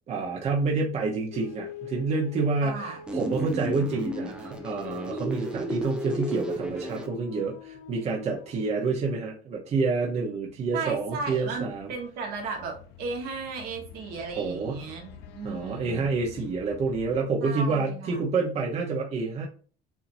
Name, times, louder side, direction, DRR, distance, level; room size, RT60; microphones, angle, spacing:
voice 1, 0.1-11.9 14.4-14.9 15.4-19.5, right 4 dB, 40° right, -1 dB, 1.0 m, -28 dB
sound 1, 1.3-9.0 10.2-17.2, left 5 dB, 80° left, 0.7 m, -44 dB
voice 2, 2.6-3.0 10.7-16.1 17.4-18.2, right 4 dB, 70° right, 2 dB, 1.5 m, -35 dB
sound 2, 3.1-7.1, right 1 dB, 5° right, 0.6 m, -33 dB
7.1 x 2.8 x 2.7 m, 0.41 s
cardioid pair, 135°, 16 cm